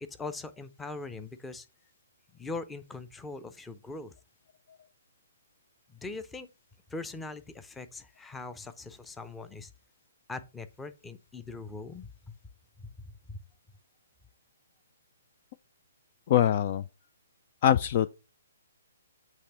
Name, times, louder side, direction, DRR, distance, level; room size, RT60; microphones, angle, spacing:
voice 1, 0.0-1.7 2.3-4.1 5.9-6.5 6.9-9.7 10.3-12.4 12.8-13.4, left 3 dB, 10° left, 0.6 m, -41 dB
voice 2, 16.3-16.8 17.6-18.2, left 10 dB, 40° left, 0.3 m, -23 dB
8.4 x 3.3 x 5.3 m
figure-of-eight pair, 135°, 0 cm